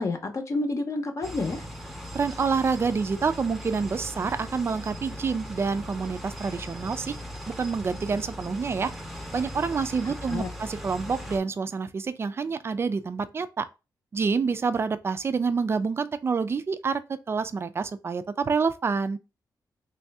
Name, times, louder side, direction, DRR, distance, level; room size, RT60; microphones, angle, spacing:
voice 1, 0.0-1.6 10.0-10.5, left 2 dB, 45° left, 0.7 m, -29 dB
sound 1, 1.2-11.4, equal, ahead, 0.6 m, -39 dB
voice 2, 2.1-7.1 7.6-8.9 9.3-13.6 14.1-19.2, right 5 dB, 35° right, 0.4 m, -27 dB
3.1 x 2.7 x 3.3 m
cardioid pair, 110°, 7 cm